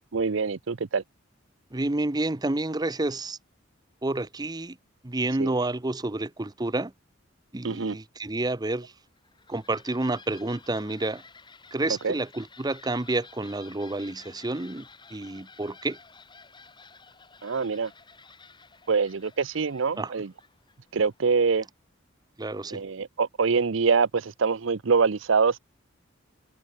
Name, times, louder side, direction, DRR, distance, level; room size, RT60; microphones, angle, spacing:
voice 1, 0.1-1.0 5.4-5.6 7.6-8.0 12.0-12.1 17.4-17.9 18.9-20.3 20.9-21.7 22.7-25.6, right 5 dB, 70° right, 0.6 m, -24 dB
voice 2, 1.7-3.4 4.0-4.8 5.0-6.9 7.5-8.9 9.5-11.2 11.7-14.8 15.1-16.0 20.0-20.1 22.4-22.8, right 2 dB, 20° right, 0.8 m, -29 dB
sound 1, 9.1-21.6, left 4 dB, 25° left, 5.4 m, -53 dB
head